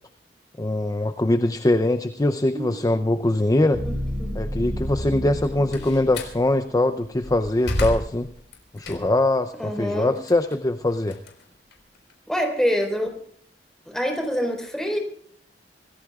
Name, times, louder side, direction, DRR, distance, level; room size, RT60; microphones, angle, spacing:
voice 1, 0.6-3.8 4.4-8.3 8.7-11.2, left 1 dB, 20° left, 9 dB, 0.6 m, -22 dB
sound 1, 2.5-6.6, equal, 85° right, 4.4 m, -32 dB
voice 2, 3.8-4.4 5.8-5.9 9.6-10.2 12.3-13.1 13.8-15.0, equal, 5° left, 2 dB, 4.4 m, -26 dB
Slam, 5.3-6.4 7.0-9.3 9.7-12.1, left 1 dB, 80° left, 4.5 m, -32 dB
26.5 x 19.0 x 2.4 m, 0.62 s
head